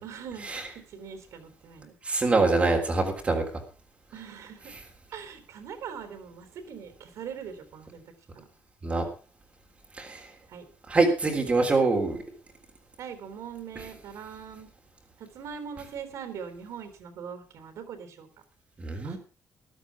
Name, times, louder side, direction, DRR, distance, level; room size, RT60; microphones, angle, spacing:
voice 1, 0.0-0.5 0.9-2.0 4.1-4.7 5.1-8.0 8.3-8.5 10.5-10.7 13.0-14.7 15.2-18.3 19.0-19.2, right 7 dB, 65° right, 8 dB, 3.6 m, -41 dB
voice 2, 2.0-3.4 8.8-9.0 10.0-10.3 10.9-12.2 18.8-19.2, right 3 dB, 20° right, 1 dB, 3.5 m, -24 dB
14.5 x 12.0 x 4.8 m, 0.35 s
cardioid pair, 180°, 6 cm